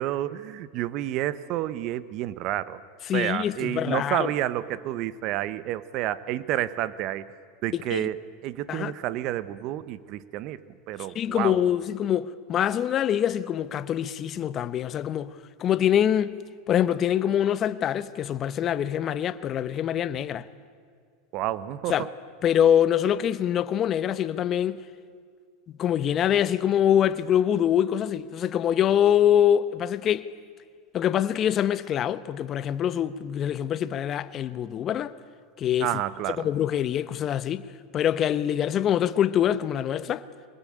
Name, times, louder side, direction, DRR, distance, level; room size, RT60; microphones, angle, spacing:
voice 1, 0.0-2.8 3.1-7.3 7.6-8.2 8.4-10.6 10.9-11.6 21.3-22.1 35.8-36.5, right 14 dB, 55° right, 1.1 m, -30 dB
voice 2, 3.1-4.3 7.7-8.1 8.7-8.9 11.1-16.4 16.7-20.5 21.9-22.1 22.4-24.8 25.8-30.3 30.9-35.1 35.6-35.9 36.4-37.6 37.9-40.3, left 10 dB, 40° left, 1.0 m, -24 dB
24.5 x 20.5 x 8.8 m
supercardioid pair, 110°, 0 cm